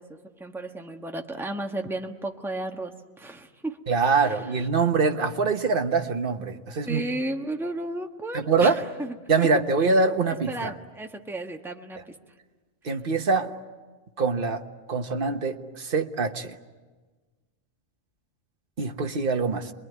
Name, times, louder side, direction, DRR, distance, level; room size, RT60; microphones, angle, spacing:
voice 1, 0.0-3.8 4.2-4.7 6.8-9.5 10.3-12.2, right 2 dB, ahead, 3 dB, 1.3 m, -34 dB
voice 2, 3.9-7.0 8.3-8.8 9.3-10.7 12.8-13.5 14.2-14.6 14.9-16.6 18.8-19.7, right 4 dB, 45° right, 5 dB, 1.4 m, -24 dB
28.0 x 21.5 x 9.4 m, 1.3 s
omnidirectional pair, 1.3 m